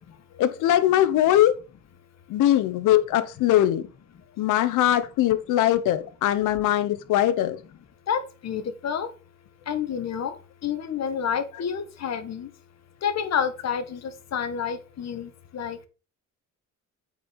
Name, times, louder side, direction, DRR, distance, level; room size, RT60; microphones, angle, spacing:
voice 1, 0.4-1.6 2.3-3.8 4.4-7.6, left 12 dB, 90° left, 1.1 m, -21 dB
voice 2, 8.1-9.1 9.7-10.3 10.6-12.5 13.0-15.8, left 7 dB, 60° left, 1.7 m, -29 dB
8.5 x 4.9 x 5.4 m
cardioid pair, 90°, 30 cm